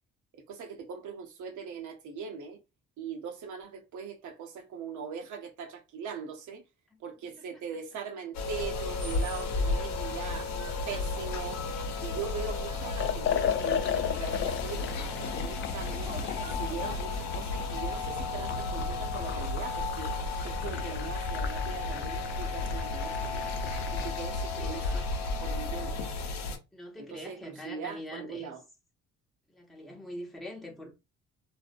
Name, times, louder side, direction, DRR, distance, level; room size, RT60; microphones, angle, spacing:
voice 1, 0.5-2.6 3.0-6.6 7.0-10.5 10.9-11.6 12.0-16.1 16.4-20.1 20.4-23.5 23.9-25.1 25.4-26.0 27.0-28.6, right 6 dB, 75° right, 0.8 m, -40 dB
sound 1, 8.3-26.6, left 3 dB, 65° left, 0.7 m, -33 dB
sound 2, 8.4-19.5, right 2 dB, 15° right, 0.4 m, -45 dB
Liquid, 12.9-24.2, left 9 dB, 45° left, 0.4 m, -36 dB
voice 2, 24.5-25.2 26.7-28.5 29.5-30.9, left 1 dB, ahead, 0.8 m, -43 dB
2.5 x 2.0 x 2.5 m
cardioid pair, 90°, 30 cm